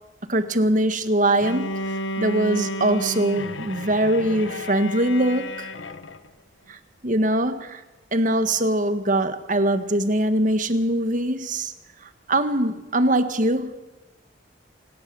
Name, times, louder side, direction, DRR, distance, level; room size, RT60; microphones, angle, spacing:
voice 1, 0.3-1.8 2.2-5.7 6.7-7.8 8.1-11.7 12.3-13.7, right 1 dB, 40° right, 1.5 m, -22 dB
Bowed string instrument, 1.4-6.3, equal, 75° left, 1.4 m, -32 dB
28.0 x 19.0 x 6.9 m
head